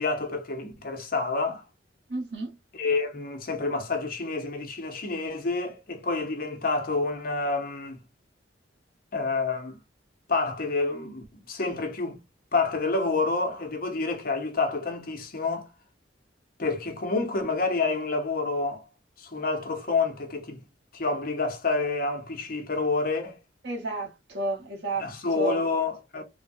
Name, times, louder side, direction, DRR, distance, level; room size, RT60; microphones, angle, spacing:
voice 1, 0.0-1.6 2.7-8.0 9.1-9.8 10.3-12.2 12.5-15.7 16.6-18.8 19.2-20.6 20.9-23.4 25.0-26.2, left 3 dB, 50° left, 0.9 m, -28 dB
voice 2, 2.1-2.5 23.6-25.0 25.4-25.6, right 2 dB, 65° right, 1.2 m, -31 dB
3.5 x 2.2 x 2.6 m
head